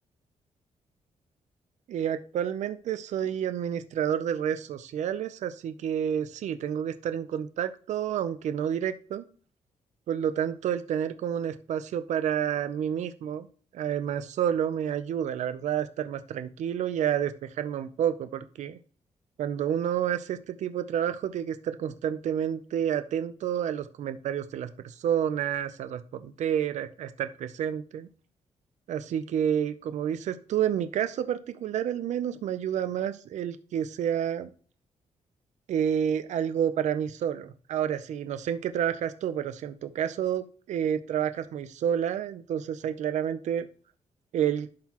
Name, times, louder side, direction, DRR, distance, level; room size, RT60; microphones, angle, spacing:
voice 1, 1.9-9.3 10.1-13.5 13.7-18.8 19.4-28.1 28.9-34.5 35.7-43.7 44.3-44.7, right 9 dB, 75° right, 10 dB, 0.5 m, -29 dB
11.5 x 3.9 x 2.9 m, 0.41 s
wide cardioid pair, 170°, 12 cm